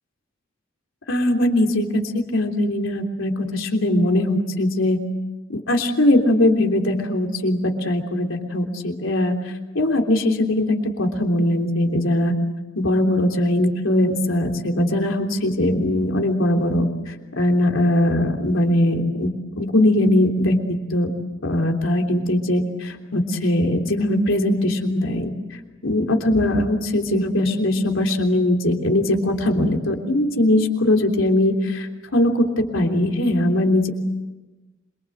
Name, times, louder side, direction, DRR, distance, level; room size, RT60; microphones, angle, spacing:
voice 1, 1.1-5.0 5.5-12.3 12.7-21.1 21.4-25.3 25.8-33.9, left 1 dB, 75° left, 3 dB, 3.3 m, -20 dB
27.0 x 24.0 x 7.9 m, 1.1 s
head